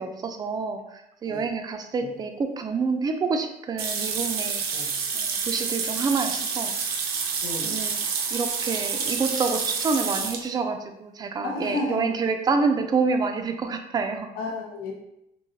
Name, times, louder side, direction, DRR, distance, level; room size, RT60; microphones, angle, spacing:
voice 1, 0.0-6.7 7.6-14.3, right 4 dB, 25° right, 6 dB, 0.3 m, -28 dB
sound 1, 3.8-10.4, right 5 dB, 70° right, 0.5 m, -28 dB
voice 2, 4.7-5.0 7.4-7.8 11.4-12.2 14.3-14.9, left 2 dB, 60° left, 0 dB, 0.6 m, -32 dB
3.0 x 2.7 x 2.7 m, 0.84 s
cardioid pair, 110°, 17 cm